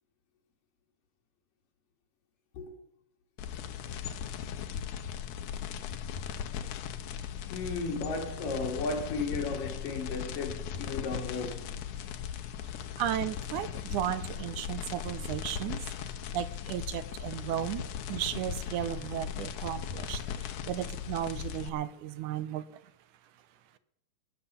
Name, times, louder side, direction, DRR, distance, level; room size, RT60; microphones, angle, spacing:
sound 1, 3.4-21.7, left 8 dB, 75° left, 2.2 m, -38 dB
voice 1, 7.5-11.8, left 3 dB, 90° left, 3.9 m, -34 dB
voice 2, 13.0-17.8 18.1-22.8, right 11 dB, 80° right, 2.1 m, -35 dB
20.0 x 7.2 x 6.9 m
omnidirectional pair, 3.7 m